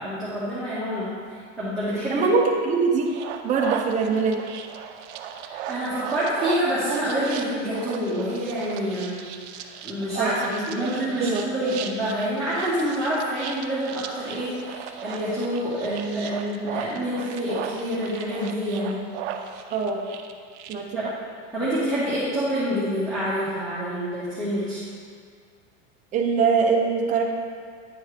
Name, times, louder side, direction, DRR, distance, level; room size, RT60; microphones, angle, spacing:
voice 1, 0.0-2.2 5.4-19.0 20.9-21.1 21.5-24.8, equal, ahead, -13 dB, 1.4 m, -27 dB
voice 2, 2.1-3.1 3.4-4.4 10.1-10.4 10.8-10.9 11.2-11.8 19.7-20.0 20.7-21.0 26.1-27.2, right 5 dB, 20° right, 1 dB, 0.7 m, -23 dB
sound 1, 3.1-20.7, right 8 dB, 70° right, 0.7 m, -37 dB
9.7 x 4.3 x 3.3 m, 2.2 s
supercardioid pair, 150°, 35 cm